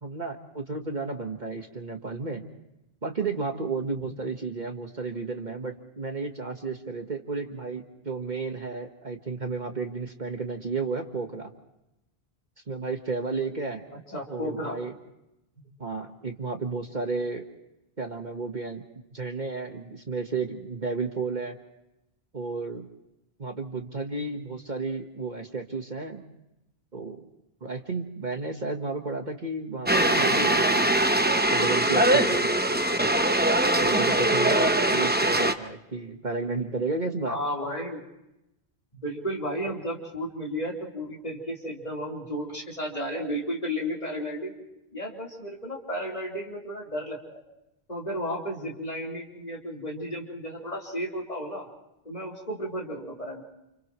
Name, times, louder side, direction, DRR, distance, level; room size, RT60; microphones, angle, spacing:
voice 1, 0.0-2.4 3.0-11.5 12.7-13.8 14.3-14.9 15.8-17.4 18.0-18.8 19.1-21.6 22.3-22.9 23.4-26.2 26.9-27.2 27.6-30.9 31.5-32.5 33.0-33.1 33.8-37.4, right 4 dB, 45° right, 4 dB, 1.6 m, -32 dB
voice 2, 14.1-14.8 37.3-38.0 39.0-44.5 44.9-47.4 47.9-51.7 52.0-53.4, equal, 40° left, -2 dB, 4.0 m, -33 dB
sound 1, 29.9-35.5, right 1 dB, 10° right, 0.8 m, -22 dB
29.5 x 29.5 x 3.1 m, 0.90 s
omnidirectional pair, 1.1 m